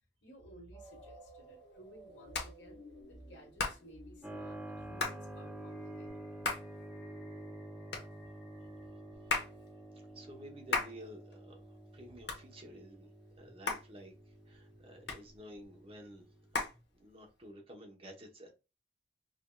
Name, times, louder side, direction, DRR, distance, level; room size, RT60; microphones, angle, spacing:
voice 1, 0.2-2.8 3.1-6.1 13.4-13.5 15.0-15.1 16.7-16.8, right 1 dB, 85° left, 1.4 m, -55 dB
sound 1, 0.7-9.7, equal, 35° left, 0.9 m, -58 dB
Hands, 0.8-17.5, left 3 dB, 65° left, 1.0 m, -41 dB
Keyboard (musical), 4.2-16.6, right 1 dB, 5° right, 0.8 m, -49 dB
voice 2, 10.1-13.1 13.4-16.3 16.6-16.7 17.0-18.5, equal, 35° right, 0.9 m, -52 dB
5.0 x 2.7 x 2.2 m
head